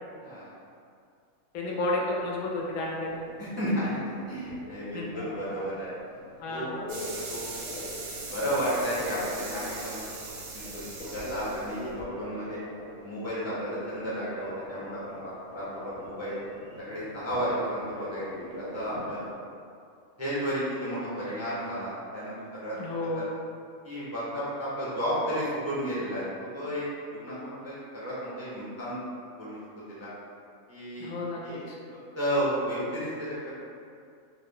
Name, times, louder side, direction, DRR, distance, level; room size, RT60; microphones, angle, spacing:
voice 1, 0.2-0.5 1.6-1.7 3.4-5.9 6.5-6.6 7.3-7.4 8.3-10.1 10.7-10.8 11.1-12.6 13.0-16.4 16.9-18.2 18.7-19.2 20.2-22.3 22.6-23.2 23.8-26.2 26.5-26.8 27.1-29.0 29.4-29.5 29.9-30.1 30.7-31.1 31.4-31.6 32.1-33.5, equal, 20° right, -10 dB, 0.4 m, -32 dB
voice 2, 1.5-3.3 4.9-5.2 6.4-6.8 22.7-23.3 31.0-31.8, left 2 dB, 85° left, -2 dB, 1.1 m, -32 dB
Telephone, 2.2-19.3, left 1 dB, 65° left, 1.0 m, -42 dB
sound 1, 6.9-12.0, right 3 dB, 80° right, 1.1 m, -40 dB
3.1 x 2.1 x 3.6 m, 2.4 s
omnidirectional pair, 1.5 m